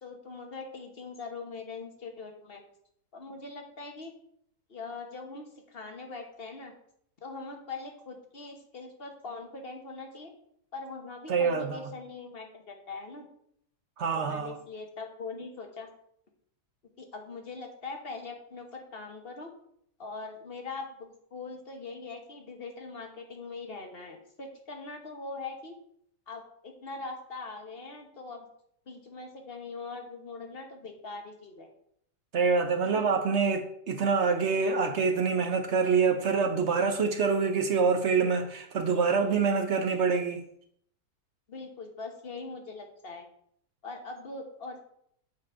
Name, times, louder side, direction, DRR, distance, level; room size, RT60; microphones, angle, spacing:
voice 1, 0.0-2.6 3.1-4.1 4.7-6.7 7.2-10.3 10.7-13.3 14.1-15.9 17.0-19.5 20.0-25.7 26.3-28.5 28.9-31.7 32.9-33.0 41.5-43.3 43.8-44.9, left 3 dB, 40° left, 1.4 m, -42 dB
voice 2, 11.3-11.9 14.0-14.6 32.3-40.4, right 5 dB, 55° right, 0.9 m, -26 dB
8.4 x 4.7 x 4.7 m
omnidirectional pair, 1.7 m